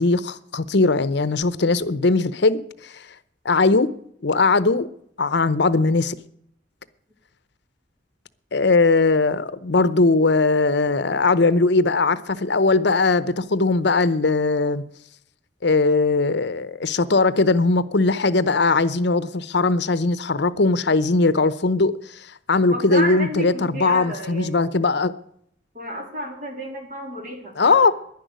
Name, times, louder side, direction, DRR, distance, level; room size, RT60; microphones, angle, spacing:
voice 1, 0.0-3.0 3.4-3.9 4.2-4.9 5.2-6.2 8.5-14.8 15.6-25.1 27.6-27.9, left 3 dB, 65° left, 0.8 m, -19 dB
voice 2, 22.7-24.7 25.7-27.9, equal, 45° right, 3.6 m, -31 dB
11.0 x 10.5 x 9.3 m
head